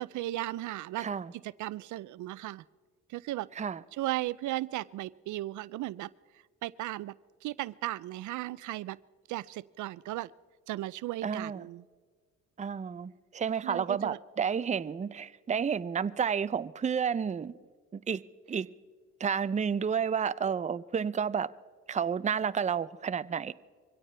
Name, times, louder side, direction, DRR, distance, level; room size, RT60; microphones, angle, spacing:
voice 1, 0.0-1.1 1.4-2.6 3.1-3.5 3.9-6.1 6.6-7.2 7.4-9.0 9.3-10.3 10.7-11.8 13.6-14.2, right 16 dB, 75° right, 0.5 m, -36 dB
voice 2, 1.0-1.3 3.6-3.8 11.2-11.7 12.6-17.5 17.9-18.2 18.5-18.7 19.2-21.5 21.9-23.5, right 7 dB, 25° right, 0.5 m, -31 dB
23.5 x 16.5 x 3.3 m
cardioid pair, 90°, 30 cm